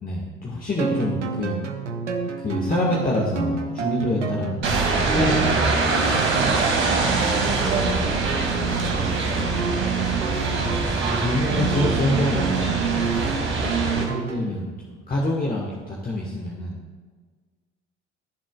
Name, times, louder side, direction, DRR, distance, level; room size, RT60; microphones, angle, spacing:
voice 1, 0.0-1.6 2.4-5.8 10.6-13.0 13.6-13.7 14.0-16.8, left 1 dB, 25° left, -4 dB, 1.9 m, -27 dB
sound 1, 0.8-14.5, right 5 dB, 85° right, 0.8 m, -29 dB
sound 2, 4.6-14.0, right 3 dB, 35° right, 2.3 m, -24 dB
voice 2, 7.0-9.2, right 4 dB, 50° right, -1 dB, 1.5 m, -32 dB
21.0 x 7.4 x 2.5 m, 1.5 s
figure-of-eight pair, 60°, 35 cm